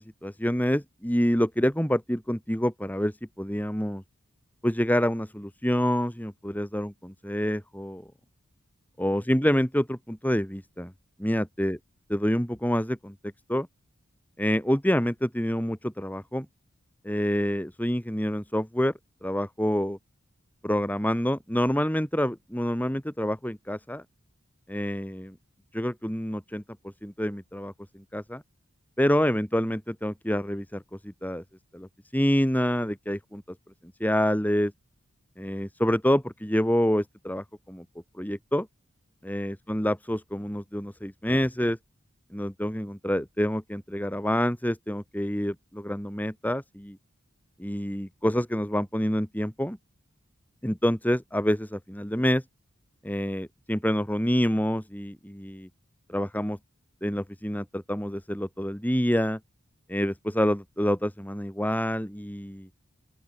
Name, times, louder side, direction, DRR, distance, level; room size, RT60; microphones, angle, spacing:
voice 1, 0.0-4.0 4.6-8.1 9.0-10.9 11.2-11.8 12.1-13.1 13.5-13.7 14.4-16.5 17.0-18.9 19.2-20.0 20.6-24.0 24.7-25.3 25.7-26.6 27.0-28.4 29.0-31.4 31.7-33.4 34.0-34.7 35.4-37.8 38.2-38.7 39.2-41.8 42.3-47.0 47.6-49.8 50.6-52.4 53.0-55.7 56.1-56.6 57.0-59.4 59.9-62.7, equal, 10° left, 4.4 m, -27 dB
open air
head